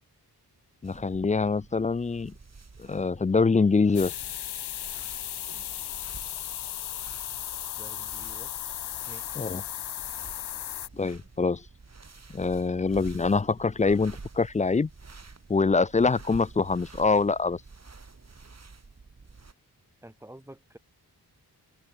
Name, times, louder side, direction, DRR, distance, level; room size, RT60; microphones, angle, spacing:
voice 1, 0.8-2.3 2.8-4.1 9.4-9.6 10.9-11.7 12.3-14.9 15.5-17.6, left 4 dB, 20° left, 0.3 m, -24 dB
sound 1, 0.8-19.5, right 4 dB, 40° right, 5.6 m, -49 dB
sound 2, 3.9-10.9, left 11 dB, 80° left, 0.6 m, -36 dB
voice 2, 7.8-8.5 9.1-9.5 20.0-20.8, right 1 dB, 5° right, 2.6 m, -49 dB
open air
wide cardioid pair, 115°, 39 cm